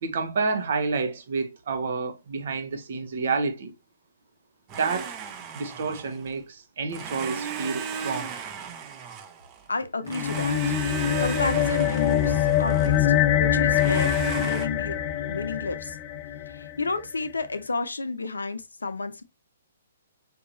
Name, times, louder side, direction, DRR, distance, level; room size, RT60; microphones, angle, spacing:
voice 1, 0.0-3.7 4.7-5.1 5.5-8.3, right 4 dB, 55° right, 1.0 m, -29 dB
Domestic sounds home sounds, 4.7-6.3 6.9-9.7 10.1-13.1 13.7-14.7, right 6 dB, 30° right, 0.7 m, -35 dB
voice 2, 9.7-10.6 11.2-13.1 13.4-15.0 15.3-16.0 16.5-19.2, left 3 dB, 85° left, 0.7 m, -31 dB
sound 1, 10.1-16.7, left 10 dB, 35° left, 0.4 m, -24 dB
5.2 x 2.8 x 2.6 m
figure-of-eight pair, 130°, 0 cm